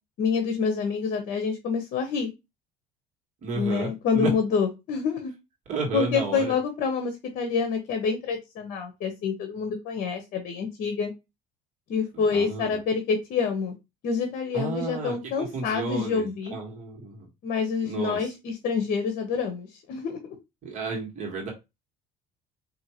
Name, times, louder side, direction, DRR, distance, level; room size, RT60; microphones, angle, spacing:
voice 1, 0.2-2.3 3.5-5.3 5.9-11.1 11.9-13.7 14.0-16.5 17.4-20.3, left 5 dB, 55° left, 6 dB, 0.9 m, -27 dB
voice 2, 3.4-4.3 5.7-6.5 12.1-12.7 14.5-17.3 17.8-18.3 20.6-21.5, right 3 dB, 45° right, 0 dB, 1.5 m, -32 dB
4.5 x 2.8 x 2.9 m, 0.23 s
cardioid pair, 135°, 17 cm